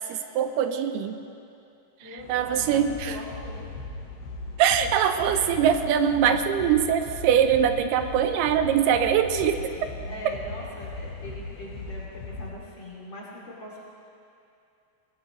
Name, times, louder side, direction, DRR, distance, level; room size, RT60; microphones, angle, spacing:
voice 1, 0.1-1.2 2.3-3.2 4.6-9.7, right 9 dB, 85° right, 8 dB, 2.6 m, -22 dB
voice 2, 2.0-3.7 10.1-13.8, left 1 dB, 35° left, -5 dB, 2.6 m, -41 dB
sound 1, 2.2-12.5, left 3 dB, 90° left, 3.3 m, -38 dB
22.0 x 18.0 x 3.1 m, 2.7 s
omnidirectional pair, 4.6 m